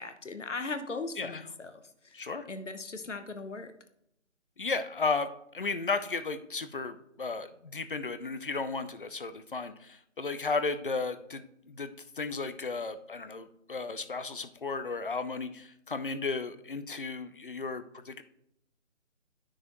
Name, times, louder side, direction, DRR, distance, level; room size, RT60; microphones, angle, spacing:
voice 1, 0.0-2.2 2.5-3.7, left 3 dB, 70° left, 8 dB, 1.1 m, -38 dB
voice 2, 2.1-2.5 4.6-18.2, left 4 dB, 45° left, 11 dB, 0.6 m, -34 dB
10.0 x 6.2 x 3.0 m, 0.76 s
figure-of-eight pair, 150°, 38 cm